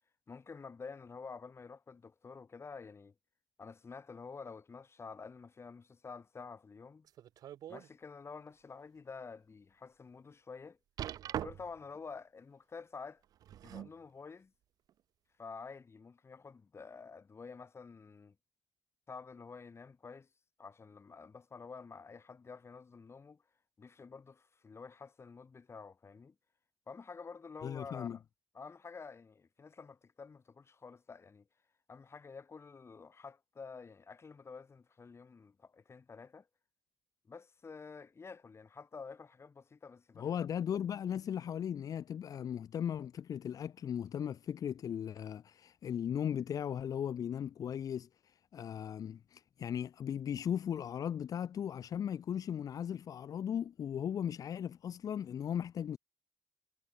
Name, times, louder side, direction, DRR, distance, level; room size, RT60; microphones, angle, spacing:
voice 1, 0.3-3.1 3.6-7.0 7.7-10.8 11.4-13.2 13.6-14.5 15.4-18.3 19.1-20.3 20.6-23.4 23.8-26.3 26.9-28.2 28.5-31.5 31.9-36.5 37.2-40.4, left 5 dB, 45° left, 1.2 m, -49 dB
sound 1, 7.1-7.9 8.4-8.5 9.1-9.2 11.0-11.9 13.2-14.0 14.9-15.0, right 11 dB, 75° right, 0.3 m, -42 dB
voice 2, 27.6-28.2 40.2-48.1 48.5-56.0, left 9 dB, 70° left, 0.6 m, -37 dB
cardioid pair, 60°, 6 cm